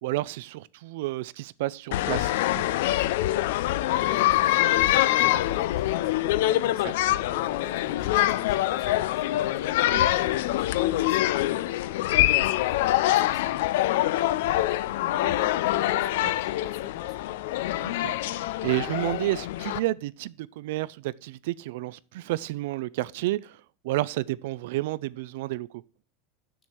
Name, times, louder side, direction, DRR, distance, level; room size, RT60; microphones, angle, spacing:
voice 1, 0.0-2.8 6.8-6.9 9.9-10.1 16.2-16.3 17.8-25.8, right 17 dB, 70° right, 0.4 m, -31 dB
sound 1, 1.9-19.8, left 15 dB, 75° left, 0.4 m, -25 dB
voice 2, 3.4-17.3, left 4 dB, 20° left, 1.5 m, -46 dB
6.9 x 6.3 x 7.3 m
supercardioid pair, 155°, 0 cm